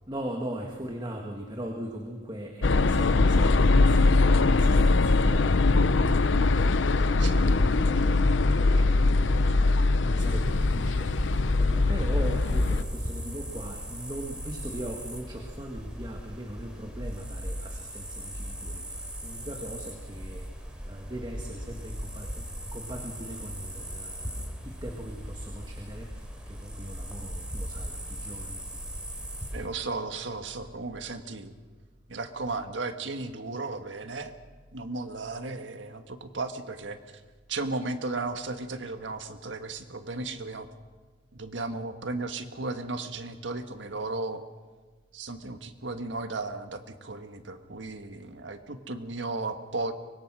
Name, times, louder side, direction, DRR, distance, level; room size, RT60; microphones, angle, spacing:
voice 1, 0.1-28.8, right 1 dB, 25° right, 1 dB, 1.8 m, -40 dB
sound 1, 2.6-12.8, left 3 dB, 85° left, 0.7 m, -22 dB
voice 2, 7.0-7.8 29.5-31.5 32.1-34.3 34.7-37.0 37.5-40.7 41.3-44.4 45.1-49.9, right 3 dB, 85° right, 7 dB, 1.6 m, -35 dB
sound 2, 10.2-29.7, equal, 5° right, 3.4 m, -38 dB
24.5 x 21.5 x 6.3 m, 1.4 s
head